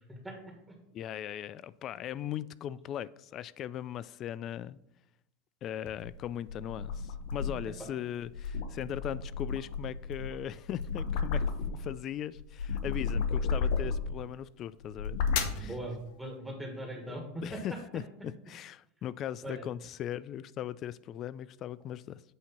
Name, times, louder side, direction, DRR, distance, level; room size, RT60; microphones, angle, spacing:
voice 1, 0.1-0.4 0.7-0.8 15.6-17.6 19.4-19.6, right 1 dB, 5° right, 1.5 m, -40 dB
voice 2, 0.9-4.8 5.6-15.2 15.5-15.7 17.1-22.2, left 10 dB, 45° left, 0.3 m, -39 dB
sound 1, 5.9-7.7 8.2-12.0 12.4-14.2 14.8-15.7, left 5 dB, 70° left, 0.8 m, -33 dB
8.3 x 2.9 x 5.6 m
hypercardioid pair, 100°, 0 cm